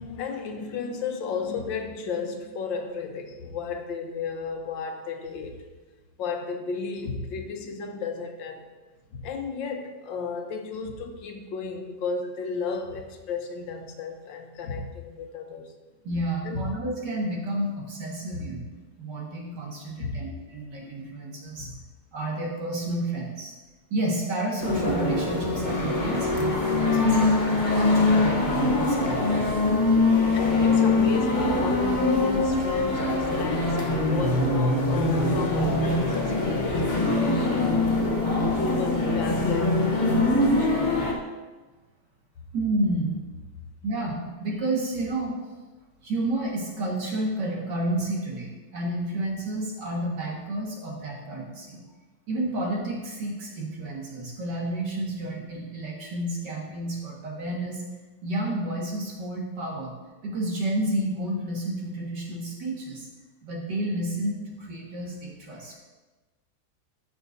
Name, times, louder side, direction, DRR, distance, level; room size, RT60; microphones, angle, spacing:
voice 1, 0.0-5.6 6.2-8.7 9.1-15.7 16.4-16.7 18.3-18.4 20.0-20.3 21.5-21.8 30.3-37.9 38.5-41.1, left 4 dB, 90° left, 5 dB, 1.6 m, -33 dB
voice 2, 16.0-18.6 19.0-21.7 22.1-23.5 23.9-27.2 27.7-29.4 30.0-30.5 32.7-32.9 42.5-43.2 43.8-45.3 46.0-51.8 52.3-57.8 58.2-59.9 60.2-63.1 63.4-65.7, right 1 dB, 70° right, -2 dB, 2.3 m, -30 dB
sound 1, 24.6-41.1, left 2 dB, 35° left, 0.8 m, -23 dB
14.5 x 5.8 x 2.7 m, 1.2 s
omnidirectional pair, 2.0 m